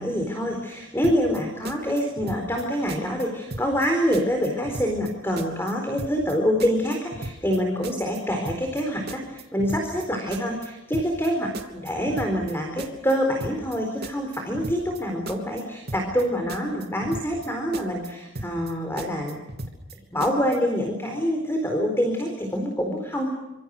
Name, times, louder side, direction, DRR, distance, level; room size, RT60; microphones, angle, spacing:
voice 1, 0.0-19.4 20.1-23.3, equal, 10° left, 3 dB, 4.2 m, -26 dB
sound 1, 1.0-1.4 1.6-2.6 2.9-3.2 3.5-3.9 4.1-5.1 5.4-5.7 6.0-6.3 6.6-7.6 7.8-8.2 8.5-8.8 9.1-10.0 10.3-10.7 10.9-11.3 11.5-12.5 12.8-13.1 13.4-13.8 14.0-15.0 15.3-15.6 15.9-16.2 16.5-17.5 17.7-18.1 18.4-18.7 19.0-19.9 20.2-20.6, right 2 dB, 50° right, 2.9 m, -36 dB
26.5 x 26.5 x 6.7 m, 1.0 s
head